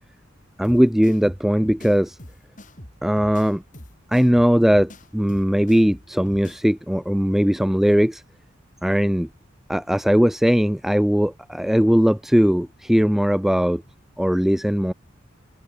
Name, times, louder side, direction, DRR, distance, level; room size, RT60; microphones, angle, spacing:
sound 1, 0.6-6.6, left 1 dB, 40° left, 4.9 m, -44 dB
voice 1, 0.6-2.2 3.0-3.6 4.1-8.2 8.8-9.3 9.7-13.8 14.2-14.9, equal, ahead, 0.3 m, -19 dB
head